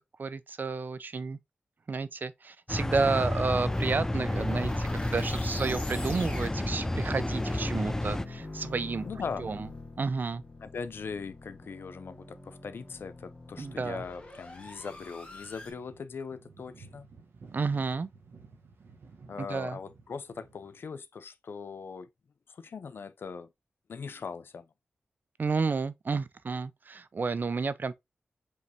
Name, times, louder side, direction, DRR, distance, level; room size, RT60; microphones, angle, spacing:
voice 1, 0.2-1.4 1.9-9.1 9.4-9.7 10.0-10.4 13.6-14.0 17.5-18.1 19.4-19.8 25.4-27.9, right 4 dB, 50° right, 0.5 m, -31 dB
sound 1, 2.7-8.2, left 1 dB, 15° left, 0.3 m, -31 dB
sound 2, 2.8-15.7, left 2 dB, 35° left, 1.9 m, -43 dB
voice 2, 9.0-9.5 10.6-17.1 19.3-22.1 22.5-23.5 23.9-24.7, left 5 dB, 70° left, 0.5 m, -40 dB
sound 3, 9.8-10.9 11.2-12.6 13.0-20.8, right 4 dB, 80° right, 1.1 m, -57 dB
5.2 x 3.3 x 2.8 m
cardioid pair, 50°, 4 cm